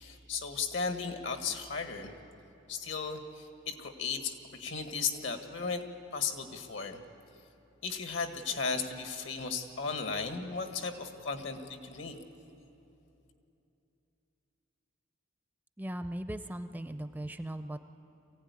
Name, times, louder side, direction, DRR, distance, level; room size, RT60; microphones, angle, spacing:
voice 1, 0.0-2.1 2.7-5.8 6.1-7.0 7.8-12.2, left 5 dB, 70° left, 6 dB, 1.6 m, -35 dB
voice 2, 15.8-17.8, right 1 dB, 10° right, 9 dB, 0.4 m, -38 dB
23.0 x 16.0 x 9.6 m, 2.9 s
head